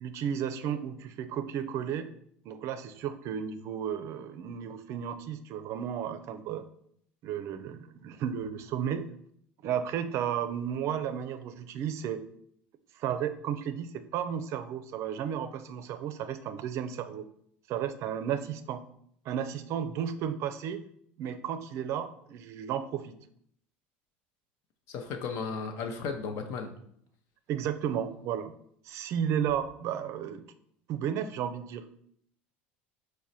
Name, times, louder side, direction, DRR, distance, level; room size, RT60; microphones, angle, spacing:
voice 1, 0.0-2.1 2.5-6.6 7.2-9.1 9.6-12.2 13.0-17.2 17.7-18.8 19.3-20.8 21.2-23.1 27.5-28.5 28.9-30.4 30.9-31.8, right 9 dB, 55° right, 10 dB, 0.4 m, -33 dB
voice 2, 24.9-26.7, left 5 dB, 60° left, 5 dB, 0.7 m, -35 dB
4.7 x 2.1 x 4.1 m, 0.67 s
hypercardioid pair, 80°, 6 cm